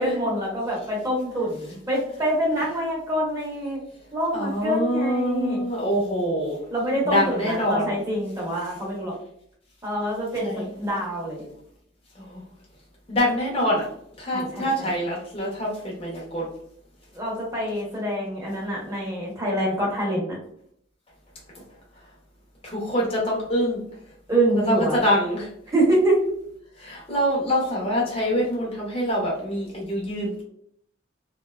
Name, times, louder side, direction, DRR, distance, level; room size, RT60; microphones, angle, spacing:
voice 1, 0.0-3.8 4.1-5.6 6.7-9.1 9.8-10.5 10.8-11.5 14.3-14.9 17.1-20.4 24.3-25.0 25.7-26.2, right 1 dB, 15° right, -3 dB, 0.7 m, -25 dB
voice 2, 4.3-6.6 7.1-7.8 10.4-10.7 12.2-12.4 13.1-13.8 14.2-16.5 22.6-23.8 24.6-25.5 26.8-30.4, equal, 30° left, -4 dB, 0.7 m, -25 dB
2.6 x 2.2 x 2.3 m, 0.68 s
head